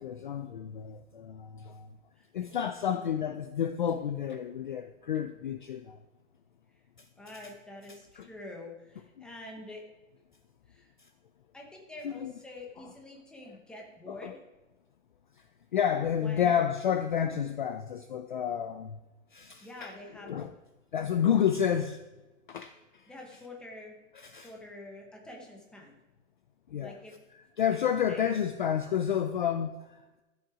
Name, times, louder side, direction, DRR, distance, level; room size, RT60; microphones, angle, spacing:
voice 1, 0.0-1.9 2.3-6.0 8.2-8.3 9.2-9.3 11.0-11.1 12.0-12.3 12.8-12.9 14.1-14.3 15.7-19.0 19.3-19.9 20.2-20.5 20.9-22.0 22.5-23.0 24.1-24.5 26.7-27.0 27.3-30.2, left 8 dB, 40° left, 9 dB, 0.4 m, -30 dB
voice 2, 2.5-3.1 7.2-9.8 10.7-10.9 11.5-14.4 16.2-16.5 19.6-20.4 23.1-23.9 24.3-26.0 26.8-27.1 27.7-27.8 28.1-28.3, left 2 dB, ahead, -1 dB, 0.9 m, -46 dB
13.0 x 7.8 x 4.9 m, 1.1 s
hypercardioid pair, 175°, 41 cm